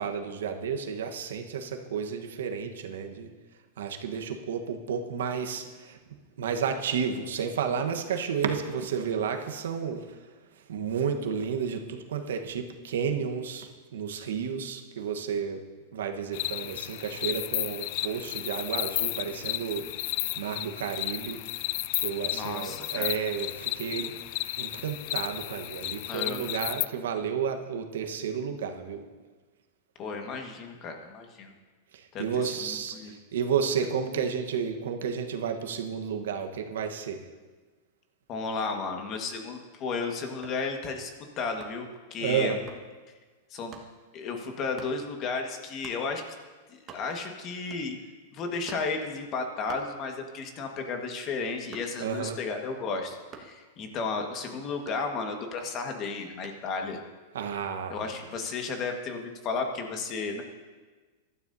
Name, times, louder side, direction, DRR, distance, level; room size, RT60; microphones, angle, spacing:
voice 1, 0.0-3.3 3.8-6.0 6.4-10.0 10.7-15.6 15.9-19.8 20.4-21.4 22.0-24.2 24.6-29.0 32.2-32.9 33.3-37.2 42.2-42.6 52.0-52.4 57.3-58.1, right 7 dB, 85° right, 5 dB, 1.2 m, -31 dB
sound 1, 16.3-26.9, left 17 dB, 55° left, 0.3 m, -33 dB
voice 2, 22.3-23.1 26.1-26.5 30.0-31.5 32.1-33.1 38.3-41.1 41.4-42.6 43.5-43.8 44.1-46.2 46.7-48.0 48.3-57.0 57.9-60.4, left 4 dB, 35° left, 4 dB, 1.6 m, -33 dB
sound 2, 40.4-40.7 41.6-41.9 42.7-42.9 43.7-43.9 44.8-45.0 45.8-46.1 46.5-46.6 46.8-47.3 47.7-48.1 48.7-49.0 49.7-50.4 50.8-52.2 53.3-53.6 54.9-55.5 56.4-56.7, right 5 dB, 30° right, 1.5 m, -48 dB
15.5 x 12.5 x 2.7 m, 1.4 s
supercardioid pair, 135°, 0 cm